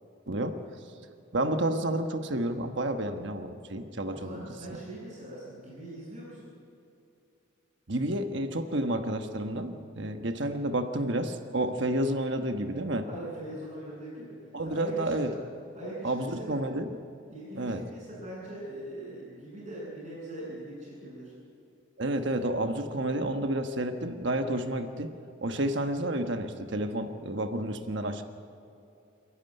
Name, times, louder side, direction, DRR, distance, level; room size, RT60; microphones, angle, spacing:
voice 1, 0.3-0.6 1.3-4.5 7.9-13.1 14.5-15.3 16.0-17.0 17.6-17.9 22.0-25.1 25.4-28.2, right 1 dB, 60° right, 7 dB, 1.2 m, -30 dB
voice 2, 4.1-6.5 13.0-15.4 15.7-16.6 17.3-21.3, right 1 dB, 25° right, -11 dB, 7.4 m, -41 dB
27.5 x 11.5 x 9.7 m, 2.7 s
head